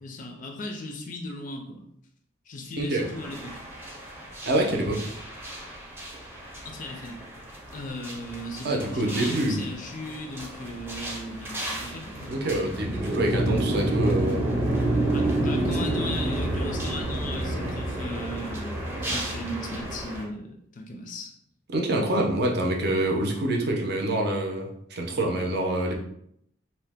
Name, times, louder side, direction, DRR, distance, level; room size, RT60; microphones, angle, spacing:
voice 1, 0.0-1.9 2.5-3.6 6.6-7.2 7.7-12.3 15.1-21.3, left 1 dB, 40° left, 3 dB, 0.4 m, -37 dB
sound 1, 3.0-20.2, right 1 dB, 10° right, 0.6 m, -30 dB
voice 2, 4.4-5.1 8.6-9.6 12.3-14.4 21.7-26.0, right 1 dB, 55° right, 1 dB, 0.6 m, -26 dB
2.7 x 2.0 x 3.4 m, 0.72 s
head